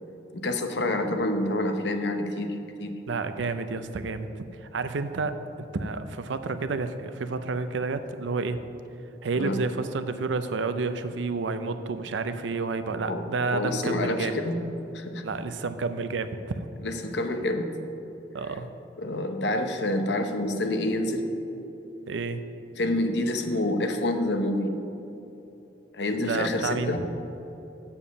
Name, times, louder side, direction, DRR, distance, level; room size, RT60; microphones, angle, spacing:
voice 1, 0.3-3.0 9.3-9.6 13.1-13.2 13.5-14.6 14.9-15.2 16.8-17.7 19.0-21.2 22.8-24.7 25.9-27.0, left 1 dB, 65° left, 6 dB, 0.8 m, -27 dB
voice 2, 3.1-8.6 9.2-14.4 15.2-16.7 18.3-18.7 22.1-22.4 26.2-27.1, right 4 dB, 80° right, 10 dB, 0.5 m, -30 dB
7.2 x 7.1 x 6.8 m, 2.9 s
head